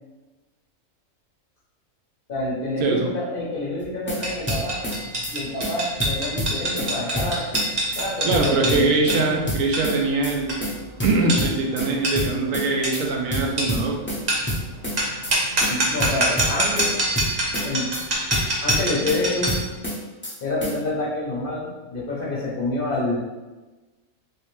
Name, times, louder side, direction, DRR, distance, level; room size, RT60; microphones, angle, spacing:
voice 1, 2.3-4.8 5.3-7.4 8.0-9.5 15.7-16.9 17.6-17.9 18.6-19.6 20.4-23.2, left 2 dB, 50° left, -4 dB, 0.7 m, -27 dB
sound 1, 3.8-4.2 4.5-5.0 5.2-5.3 5.6-5.7 6.0-6.9 7.1-7.7 7.9-8.0 8.3-9.2 9.5-10.0 10.2-10.3 10.6-10.7 11.0-11.9 12.2-12.7 12.9-13.0 13.3-14.2 14.5-15.0 15.2-15.3 15.6-15.7 16.0-16.9 17.2-17.7 17.9-18.0 18.3-19.2 19.5-20.0 20.2-20.3 20.6-20.7, equal, 15° left, 0.5 m, -27 dB
sound 2, 4.2-19.7, right 1 dB, 40° right, 0.7 m, -26 dB
voice 2, 8.2-10.5 11.0-14.0, right 3 dB, 80° right, 1 dB, 1.0 m, -22 dB
3.2 x 2.8 x 3.0 m, 1.2 s
omnidirectional pair, 1.4 m